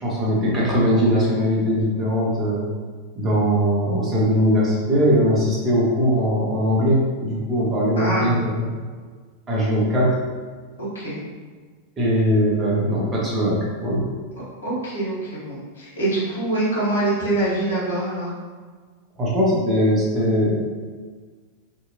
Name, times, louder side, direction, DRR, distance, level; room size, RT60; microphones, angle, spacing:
voice 1, 0.0-2.6 3.2-8.7 9.5-10.2 12.0-14.0 19.2-20.6, equal, 25° right, -5 dB, 0.9 m, -20 dB
voice 2, 8.0-8.3 10.8-11.2 14.6-18.3, right 2 dB, 65° left, -8 dB, 1.2 m, -24 dB
2.8 x 2.6 x 2.7 m, 1.5 s
figure-of-eight pair, 90°, 0 cm